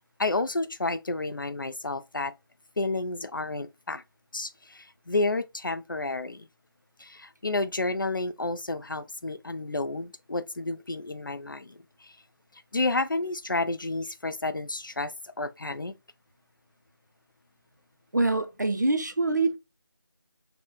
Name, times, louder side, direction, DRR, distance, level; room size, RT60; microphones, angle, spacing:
voice 1, 0.2-2.3 2.8-4.0 4.3-6.5 7.0-12.2 12.7-15.9, left 2 dB, 55° left, 0.4 m, -31 dB
voice 2, 18.1-19.6, right 2 dB, 45° right, 0.5 m, -25 dB
6.0 x 2.1 x 2.3 m
figure-of-eight pair, 170°, 13 cm